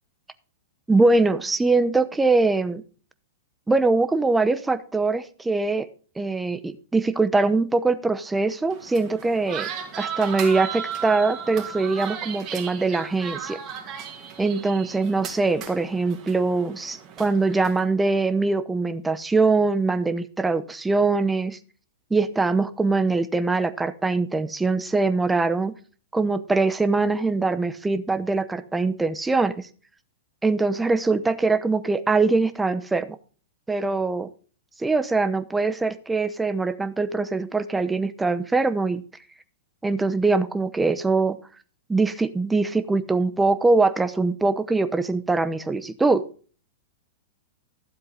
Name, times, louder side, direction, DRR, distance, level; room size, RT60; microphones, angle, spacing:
voice 1, 0.9-2.8 3.7-5.9 6.2-9.7 10.0-13.6 14.4-21.6 22.1-25.7 26.1-29.7 30.4-33.2 33.7-34.3 34.8-39.0 39.8-41.4 41.9-46.2, right 3 dB, 10° right, 12 dB, 0.9 m, -22 dB
sound 1, 8.7-17.8, right 8 dB, 35° right, 2.8 m, -36 dB
12.5 x 7.8 x 3.9 m, 0.39 s
hypercardioid pair, 105°, 0 cm